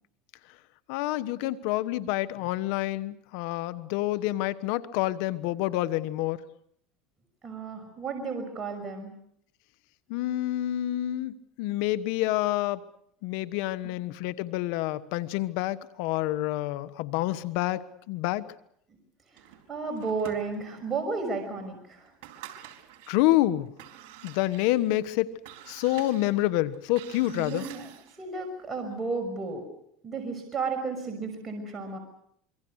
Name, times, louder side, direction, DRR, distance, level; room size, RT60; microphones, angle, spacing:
voice 1, 0.9-6.4 10.1-12.8 13.2-18.5 23.1-23.7 24.2-25.3 25.7-27.7, left 15 dB, 70° left, 15 dB, 1.2 m, -28 dB
voice 2, 7.4-9.1 19.3-22.1 27.3-27.9 28.2-29.7 30.0-32.0, right 4 dB, 25° right, 3 dB, 5.9 m, -33 dB
sound 1, 19.4-20.9 21.4-21.5 22.0-23.2 23.7-28.2, right 11 dB, 70° right, 4.2 m, -48 dB
26.5 x 24.0 x 6.4 m, 0.70 s
supercardioid pair, 105°, 0 cm